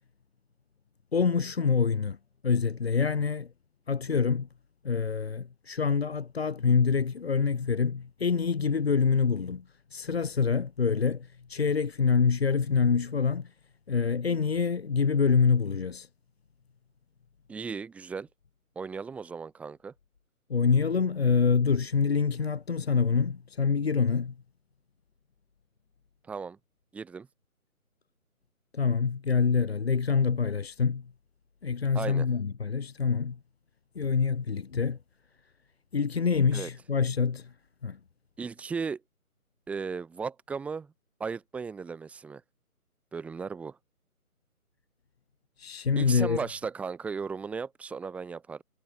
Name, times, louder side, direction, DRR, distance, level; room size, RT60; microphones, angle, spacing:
voice 1, 1.1-2.2 2.4-3.5 3.9-4.5 4.8-9.6 9.9-13.5 13.9-16.1 20.5-24.3 28.7-31.1 31.6-33.4 33.9-35.0 35.9-37.5 37.8-38.0 45.6-46.4, left 5 dB, 45° left, 1.1 m, -26 dB
voice 2, 17.5-18.3 18.7-19.9 26.2-26.6 26.9-27.3 31.9-32.3 36.5-36.7 38.4-39.0 39.7-40.9 41.2-42.4 43.1-43.8 46.0-48.6, right 5 dB, 5° right, 2.7 m, -36 dB
figure-of-eight pair, 160°, 44 cm